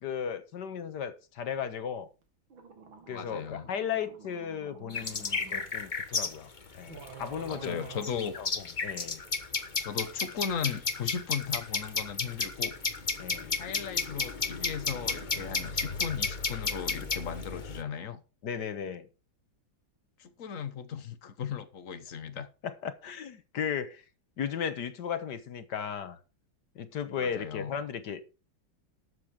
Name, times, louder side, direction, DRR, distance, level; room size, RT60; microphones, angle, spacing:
voice 1, 0.0-2.1 3.1-6.5 6.7-7.8 8.4-8.5 8.8-9.2 13.2-13.5 18.4-19.1 22.6-24.0 24.4-26.2 26.7-28.4, left 7 dB, 60° left, 1.7 m, -35 dB
sound 1, 2.2-2.3 2.5-5.7 6.5-6.6 6.9-8.0, right 5 dB, 85° right, 2.9 m, -49 dB
voice 2, 3.1-3.7 7.5-8.3 9.8-12.7 13.5-18.2 20.2-22.5 27.2-27.8, left 7 dB, 45° left, 1.5 m, -37 dB
sound 2, 4.9-17.8, left 4 dB, 30° left, 1.0 m, -33 dB
13.0 x 8.0 x 5.0 m
omnidirectional pair, 2.1 m